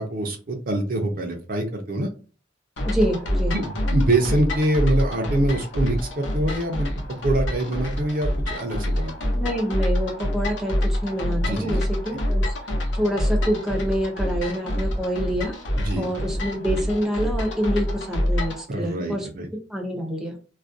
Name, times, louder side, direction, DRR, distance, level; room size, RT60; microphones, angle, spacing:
voice 1, 0.0-2.1 3.5-6.9 7.2-9.1 11.4-11.8 12.1-12.2 15.8-16.1 18.7-19.5, right 1 dB, 50° right, 4 dB, 0.5 m, -25 dB
sound 1, 2.8-18.6, equal, 70° left, 0.7 m, -26 dB
voice 2, 2.8-3.6 9.3-12.4 12.9-15.6 16.0-19.3 19.7-20.4, equal, ahead, 0 dB, 0.6 m, -26 dB
2.4 x 2.1 x 2.5 m, 0.37 s
head